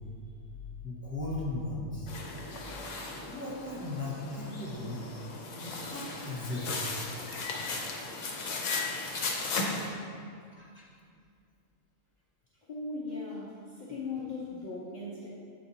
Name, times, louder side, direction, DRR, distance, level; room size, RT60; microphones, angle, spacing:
voice 1, 0.8-2.1 3.2-5.0 5.6-6.8 8.7-8.8 10.5-10.8, left 2 dB, 10° right, -8 dB, 1.1 m, -37 dB
sound 1, 2.1-9.9, left 3 dB, 75° left, 1.1 m, -36 dB
voice 2, 12.7-15.3, left 3 dB, 45° left, -7 dB, 0.8 m, -38 dB
8.4 x 4.3 x 2.7 m, 2.2 s
omnidirectional pair, 1.3 m